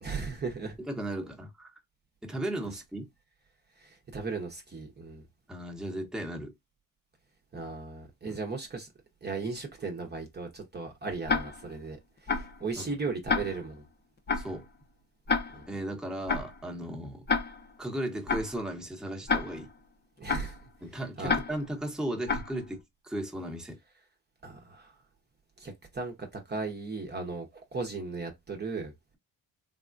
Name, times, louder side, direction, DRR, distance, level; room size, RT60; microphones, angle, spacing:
voice 1, 0.0-0.8 3.8-5.2 7.5-8.9 9.2-12.0 12.2-13.8 15.5-15.7 20.2-20.6 21.2-21.3 24.4-24.9 25.6-28.9, right 4 dB, 30° right, 0.8 m, -36 dB
voice 2, 0.8-1.7 2.2-3.1 5.5-6.5 8.2-8.4 12.8-12.9 14.3-14.7 15.7-17.2 17.8-19.7 20.8-23.8, right 1 dB, ahead, 0.9 m, -36 dB
Tick-tock, 11.3-11.8 12.3-12.6 13.3-13.8 14.3-14.6 15.3-15.8 16.3-16.6 17.3-17.8 18.3-18.6 19.3-19.8 20.3-20.6 21.3-21.8 22.3-22.6, left 4 dB, 30° left, 0.6 m, -30 dB
3.5 x 2.2 x 2.5 m
cardioid pair, 95°, 36 cm